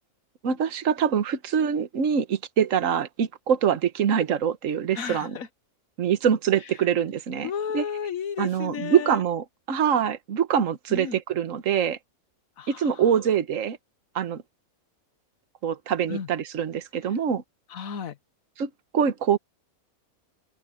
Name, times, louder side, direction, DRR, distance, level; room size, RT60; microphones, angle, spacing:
voice 1, 0.4-5.4 6.0-7.8 8.4-12.0 12.7-13.8 14.1-14.4 15.6-17.4 18.6-19.4, right 8 dB, 60° right, 1.5 m, -24 dB
voice 2, 4.9-5.5 7.4-9.2 10.9-11.2 12.6-13.0 16.1-16.3 17.7-18.2, left 7 dB, 70° left, 1.4 m, -33 dB
omnidirectional pair, 1.5 m